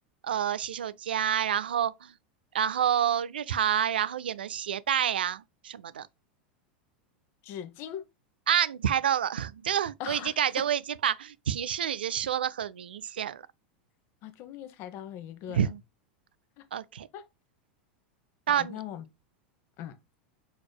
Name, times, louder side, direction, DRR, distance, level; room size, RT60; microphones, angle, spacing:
voice 1, 0.2-2.1 2.5-6.1 8.5-13.4 15.5-15.8 16.7-17.1 18.5-18.7, right 9 dB, 90° right, 0.4 m, -28 dB
voice 2, 7.4-8.0 10.0-10.7 14.2-15.7 16.6-16.7 17.1-17.2 18.5-19.0 19.8-20.0, left 10 dB, 50° left, 1.0 m, -40 dB
4.9 x 4.1 x 2.2 m
hypercardioid pair, 105°, 5 cm